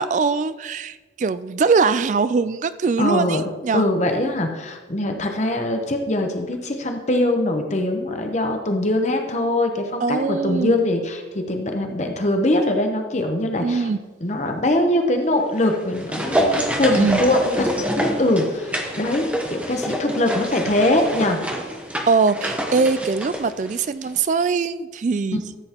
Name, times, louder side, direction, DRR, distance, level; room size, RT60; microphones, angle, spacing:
voice 1, 0.0-3.9 10.0-10.8 13.6-14.0 16.9-17.2 22.1-25.5, right 4 dB, 40° right, 14 dB, 0.3 m, -22 dB
voice 2, 3.0-3.4 3.7-13.9 14.2-19.2 19.5-21.4 25.3-25.4, left 1 dB, 40° left, 4 dB, 0.8 m, -22 dB
sound 1, 15.5-24.2 24.4-24.5, right 1 dB, 5° right, 0.8 m, -27 dB
13.0 x 7.8 x 2.9 m, 1.3 s
head